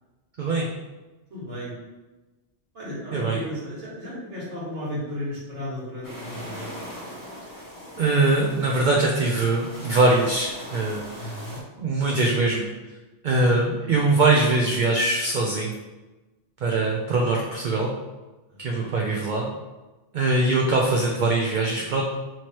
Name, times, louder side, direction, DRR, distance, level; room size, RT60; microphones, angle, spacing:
voice 1, 0.4-0.7 3.1-3.4 8.0-11.0 11.8-12.7 13.2-15.7 16.6-17.9 18.6-19.5 20.1-22.0, right 2 dB, 60° right, -1 dB, 0.5 m, -22 dB
voice 2, 1.3-1.7 2.7-6.8 11.1-11.6 13.8-14.0 17.1-17.2 18.5-18.9, left 1 dB, 85° right, -8 dB, 1.7 m, -35 dB
sound 1, 6.0-11.6, equal, 25° left, 0.5 m, -40 dB
3.1 x 2.9 x 4.3 m, 1.1 s
omnidirectional pair, 1.2 m